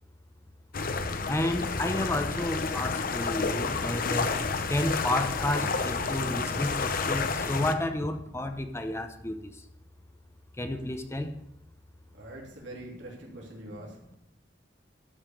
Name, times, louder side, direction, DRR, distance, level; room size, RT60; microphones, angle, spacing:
sound 1, 0.7-7.7, left 4 dB, 50° left, 0.8 m, -30 dB
voice 1, 1.3-4.3 4.7-9.6 10.6-11.4, left 1 dB, 15° left, 7 dB, 0.8 m, -31 dB
voice 2, 12.1-14.0, right 1 dB, 80° right, -3 dB, 3.1 m, -43 dB
12.5 x 5.7 x 6.9 m, 0.80 s
head